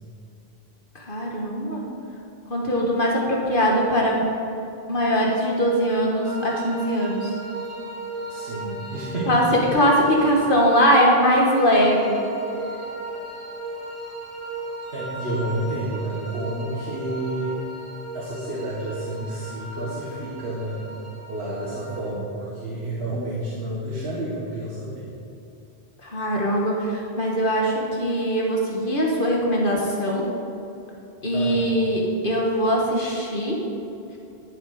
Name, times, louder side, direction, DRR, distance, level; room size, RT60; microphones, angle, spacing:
voice 1, 1.1-1.9 2.5-4.2 4.9-7.3 9.3-9.4 9.7-12.2 26.0-30.3 31.2-33.6, equal, 55° left, -2 dB, 1.5 m, -21 dB
sound 1, 6.2-22.1, right 2 dB, 40° right, 1.9 m, -36 dB
voice 2, 8.3-9.5 14.9-17.6 18.1-20.8 21.3-25.1 31.3-31.7, right 1 dB, 75° right, -6 dB, 1.8 m, -30 dB
11.5 x 6.8 x 5.0 m, 2.9 s
omnidirectional pair, 1.1 m